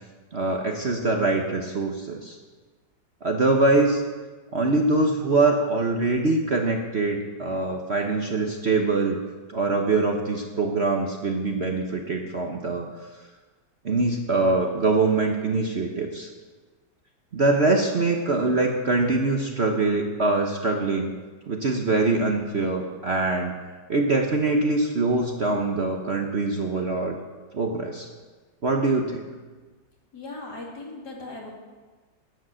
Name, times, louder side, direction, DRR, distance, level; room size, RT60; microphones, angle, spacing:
voice 1, 0.3-2.4 3.2-4.0 4.5-9.2 9.5-12.9 13.8-16.3 17.3-21.2 21.5-23.5 23.9-27.2 27.5-28.1 28.6-29.2, right 3 dB, 40° right, 2 dB, 1.1 m, -23 dB
voice 2, 30.1-31.5, left 2 dB, 60° left, -3 dB, 3.5 m, -38 dB
14.5 x 9.4 x 6.4 m, 1.3 s
omnidirectional pair, 2.0 m